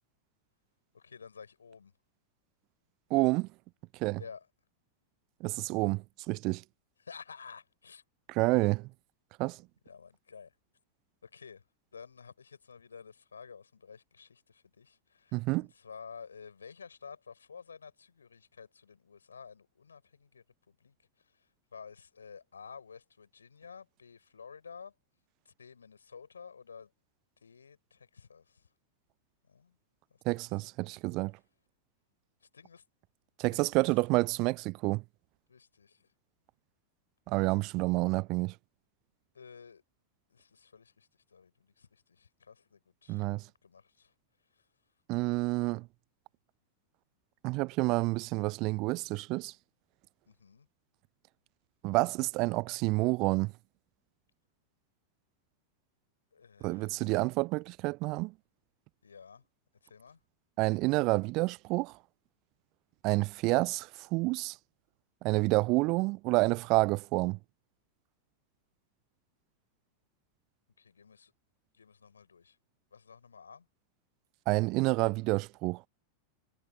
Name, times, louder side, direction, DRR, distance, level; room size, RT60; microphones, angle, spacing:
voice 1, 0.9-1.9 4.2-4.5 7.0-8.0 9.8-10.5 11.2-11.6 11.9-24.9 25.5-26.9 27.4-28.7 29.4-29.8 30.1-30.4 32.4-32.8 33.5-33.9 35.5-36.1 39.3-39.8 40.3-43.3 43.6-44.1 44.5-44.7 50.3-50.7 56.3-57.1 59.0-59.4 59.8-60.2 70.8-71.3 71.7-72.6 72.9-73.7, left 6 dB, 75° left, 5.6 m, -52 dB
voice 2, 3.1-3.5 4.0-4.2 5.4-6.6 8.3-8.9 9.4-9.6 15.3-15.7 30.3-31.3 33.4-35.0 37.3-38.5 43.1-43.4 45.1-45.9 47.4-49.5 51.8-53.5 56.6-58.3 60.6-62.0 63.0-64.6 65.2-67.4 74.5-75.8, right 24 dB, 40° right, 0.5 m, -29 dB
figure-of-eight pair, 90°, 0 cm